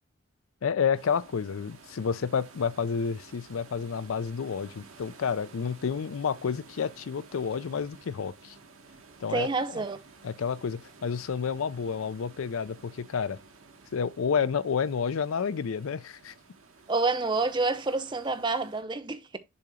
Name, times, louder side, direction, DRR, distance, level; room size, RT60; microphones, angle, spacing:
voice 1, 0.6-8.6 9.2-9.8 10.2-13.4 13.9-16.3, left 6 dB, 85° left, 0.5 m, -30 dB
sound 1, 0.9-18.8, right 4 dB, 90° right, 1.2 m, -53 dB
voice 2, 9.3-10.0 16.9-19.4, right 3 dB, 20° right, 0.5 m, -28 dB
6.9 x 2.9 x 4.9 m
head